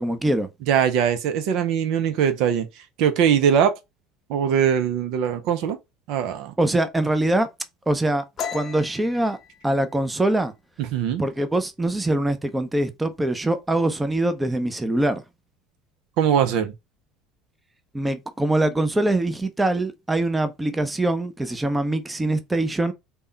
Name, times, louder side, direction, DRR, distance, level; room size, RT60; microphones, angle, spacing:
voice 1, 0.0-0.5 6.6-7.5 7.9-8.2 8.5-9.4 9.6-10.5 11.2-15.2 17.9-22.9, right 1 dB, 10° right, 0.6 m, -23 dB
voice 2, 0.7-2.7 3.0-3.8 4.3-5.8 6.1-6.5 10.9-11.2 16.2-16.7, right 8 dB, 65° right, 0.5 m, -21 dB
sound 1, 8.4-11.8 12.1-12.5 12.8-13.4 13.6-14.4, left 7 dB, 40° left, 0.6 m, -37 dB
3.4 x 2.2 x 3.8 m
hypercardioid pair, 75°, 0 cm